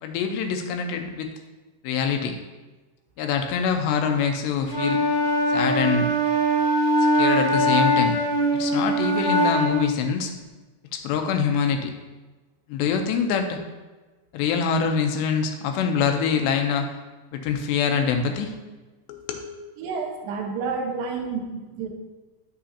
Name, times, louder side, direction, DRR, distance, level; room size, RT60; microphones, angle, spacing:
voice 1, 0.0-1.3 1.8-2.3 3.2-5.0 5.5-6.1 7.2-8.2 8.6-10.3 10.9-11.9 12.7-13.6 14.3-16.9 17.3-18.5 19.1-19.5, left 6 dB, 85° left, 5 dB, 2.9 m, -24 dB
Wind instrument woodwind instrument, 4.7-9.8, equal, 40° left, 0.8 m, -21 dB
voice 2, 19.8-21.5 21.7-21.9, right 5 dB, 70° right, 1 dB, 2.3 m, -29 dB
10.0 x 6.8 x 2.8 m, 1.2 s
omnidirectional pair, 5.0 m